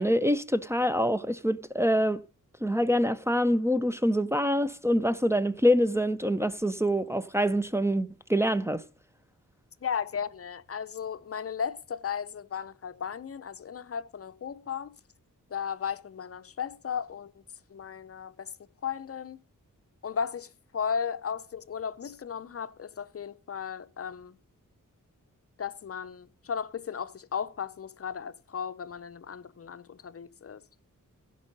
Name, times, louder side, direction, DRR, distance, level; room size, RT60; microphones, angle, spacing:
voice 1, 0.0-2.2 2.6-8.8, equal, 10° right, 0.4 m, -25 dB
voice 2, 9.8-14.9 15.5-17.4 17.7-18.5 18.8-19.4 20.0-24.4 25.6-30.6, left 7 dB, 45° left, 0.6 m, -35 dB
16.0 x 5.4 x 5.3 m
wide cardioid pair, 120°, 32 cm